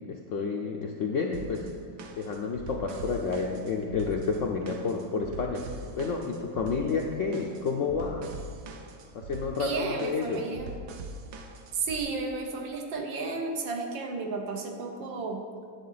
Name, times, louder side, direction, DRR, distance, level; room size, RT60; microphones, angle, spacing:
voice 1, 0.0-1.7 2.1-8.3 9.1-10.5, left 4 dB, 75° left, 2 dB, 0.7 m, -30 dB
sound 1, 1.3-12.0, right 2 dB, 65° right, 1.2 m, -43 dB
voice 2, 9.6-10.7 11.7-15.4, right 4 dB, 85° right, 2 dB, 1.8 m, -33 dB
10.0 x 7.5 x 4.0 m, 2.3 s
omnidirectional pair, 2.0 m